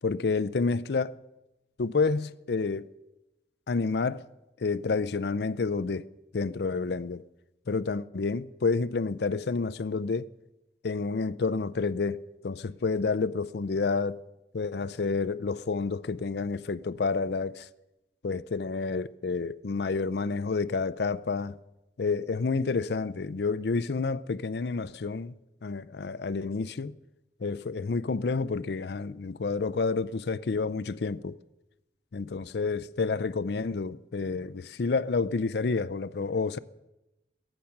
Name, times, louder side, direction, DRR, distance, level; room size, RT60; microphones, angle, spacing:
voice 1, 0.0-1.2 1.8-2.9 3.7-4.2 4.6-6.1 6.3-7.2 7.7-10.3 10.8-14.2 14.5-17.7 18.2-21.6 22.0-25.3 25.6-26.9 27.4-31.4 32.1-36.6, left 4 dB, 70° left, 0.5 m, -29 dB
16.0 x 14.0 x 5.9 m
head